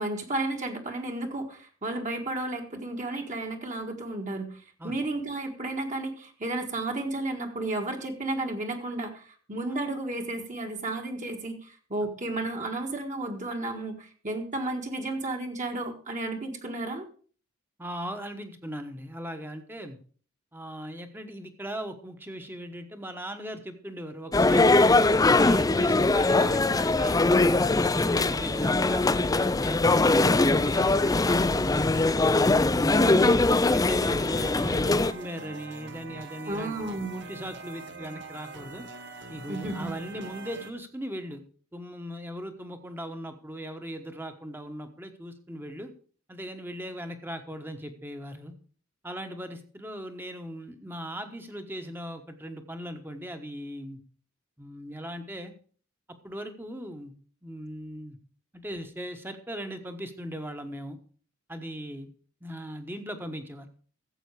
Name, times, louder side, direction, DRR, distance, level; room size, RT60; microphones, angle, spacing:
voice 1, 0.0-17.0 33.0-33.4 36.5-37.2 39.5-39.9, right 2 dB, 35° right, 2 dB, 1.6 m, -33 dB
voice 2, 17.8-20.0 20.5-24.9 25.3-31.8 32.6-33.4 33.7-36.7 37.1-38.8 39.3-41.4 41.7-45.9 46.3-48.5 49.0-54.0 54.6-55.5 56.2-57.1 57.4-58.2 58.5-61.0 61.5-62.1 62.4-63.7, equal, 10° right, 7 dB, 1.2 m, -38 dB
sound 1, 24.3-35.1, left 2 dB, 15° left, 0.4 m, -22 dB
sound 2, 30.4-32.3 32.7-33.1 33.5-34.9, right 3 dB, 90° right, 7.1 m, -55 dB
sound 3, 33.2-40.7, right 3 dB, 55° right, 1.3 m, -43 dB
14.0 x 7.9 x 4.8 m, 0.42 s
head